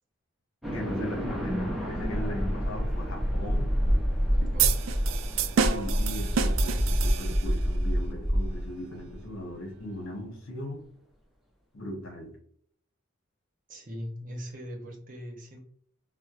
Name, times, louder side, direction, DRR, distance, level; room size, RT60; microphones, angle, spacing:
sound 1, 0.6-9.1, equal, ahead, 0.5 m, -27 dB
voice 1, 0.7-3.7 5.6-10.8 11.7-12.3, left 1 dB, 75° left, 1 dB, 0.9 m, -38 dB
sound 2, 4.6-7.7, right 7 dB, 70° right, 0.3 m, -29 dB
voice 2, 13.7-15.6, equal, 40° right, 1 dB, 0.7 m, -40 dB
4.4 x 2.0 x 2.4 m, 0.63 s
head